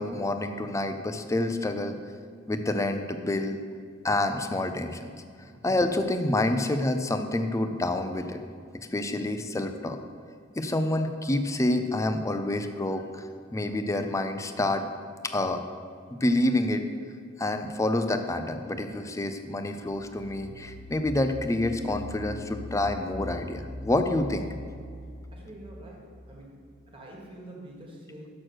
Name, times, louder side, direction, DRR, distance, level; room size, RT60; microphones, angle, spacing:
voice 1, 0.0-2.0 2.5-3.6 4.0-5.1 5.6-8.4 8.9-10.0 10.6-13.3 13.5-14.9 15.2-15.6 16.1-16.8 17.4-24.5, left 1 dB, 15° left, 7 dB, 0.4 m, -28 dB
sound 1, 19.8-26.4, equal, 10° right, 1.1 m, -41 dB
voice 2, 25.3-26.6 26.9-28.3, right 1 dB, 30° right, -2 dB, 1.6 m, -46 dB
6.4 x 6.2 x 6.1 m, 2.2 s
head